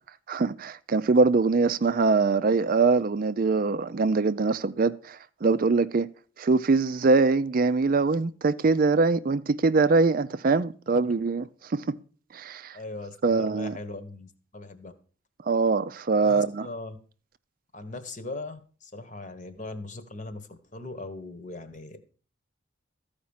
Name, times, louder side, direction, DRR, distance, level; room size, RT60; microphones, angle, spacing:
voice 1, 0.3-6.1 6.4-12.0 12.3-12.8 13.2-13.7 15.5-16.7, right 4 dB, 45° right, 0.4 m, -23 dB
voice 2, 12.7-14.9 16.1-17.0 17.7-22.0, left 2 dB, 40° left, 1.3 m, -39 dB
14.0 x 5.1 x 7.2 m
head